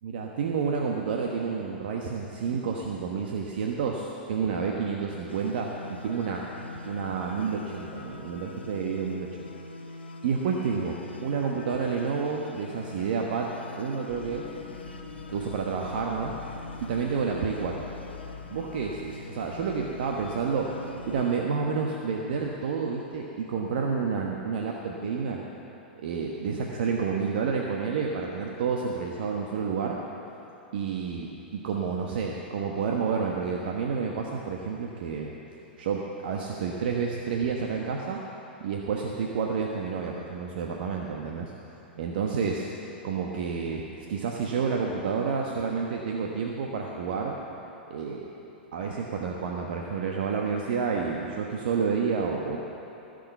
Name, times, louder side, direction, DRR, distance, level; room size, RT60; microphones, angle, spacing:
voice 1, 0.0-6.4 6.8-9.5 10.2-13.5 13.8-14.5 15.3-16.3 16.8-17.9 18.5-20.7 21.1-25.5 25.9-30.0 30.7-35.3 35.8-38.2 38.6-41.5 42.0-42.7 43.0-47.4 47.9-48.3 48.7-52.6, right 5 dB, 65° right, 0 dB, 1.1 m, -29 dB
sound 1, 5.3-21.4, left 2 dB, 85° left, 1.0 m, -43 dB
sound 2, 14.1-21.2, left 7 dB, 50° left, 1.4 m, -46 dB
16.0 x 6.7 x 8.1 m, 3.0 s
hypercardioid pair, 105°, 6 cm